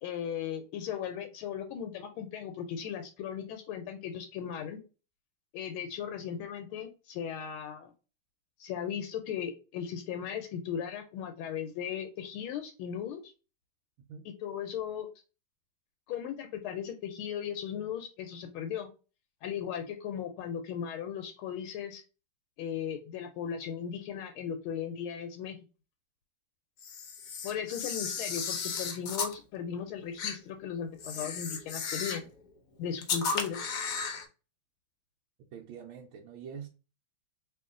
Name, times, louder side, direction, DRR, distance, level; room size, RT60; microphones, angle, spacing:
voice 1, 0.0-4.8 5.5-7.9 8.6-13.3 14.2-15.1 16.1-18.9 19.4-22.0 22.6-25.6 27.4-32.3 32.8-33.6, left 8 dB, 90° left, 1.4 m, -37 dB
Camera, 26.8-29.3 30.2-30.4 31.0-32.3 33.0-34.2, left 5 dB, 65° left, 0.9 m, -34 dB
voice 2, 35.5-36.7, right 7 dB, 80° right, 1.3 m, -45 dB
3.0 x 2.8 x 3.6 m
omnidirectional pair, 2.2 m